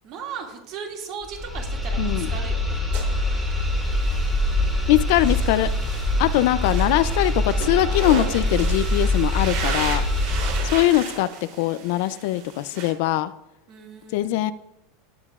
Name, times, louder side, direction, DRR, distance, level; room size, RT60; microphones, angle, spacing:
voice 1, 0.0-2.8 4.6-4.9 13.7-14.3, right 6 dB, 40° right, 1 dB, 2.2 m, -37 dB
sound 1, 1.2-10.9, left 1 dB, ahead, 2.4 m, -24 dB
voice 2, 2.0-2.3 4.9-5.7 6.2-10.1 10.6-11.3 11.6-13.3 14.1-14.5, left 15 dB, 55° left, 15 dB, 0.4 m, -21 dB
sound 2, 2.9-12.9, right 6 dB, 60° right, 3.2 m, -35 dB
17.0 x 8.7 x 2.4 m, 0.87 s
supercardioid pair, 160°, 0 cm